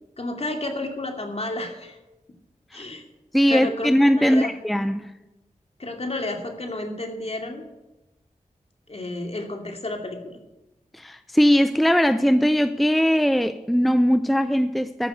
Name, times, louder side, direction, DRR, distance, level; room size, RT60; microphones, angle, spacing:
voice 1, 0.2-2.0 2.7-3.0 3.5-4.5 5.8-7.7 8.9-10.4, left 2 dB, 50° left, 3 dB, 2.6 m, -31 dB
voice 2, 3.3-5.1 10.9-15.1, equal, ahead, 11 dB, 0.6 m, -20 dB
13.5 x 6.4 x 8.6 m, 0.99 s
cardioid pair, 40°, 14 cm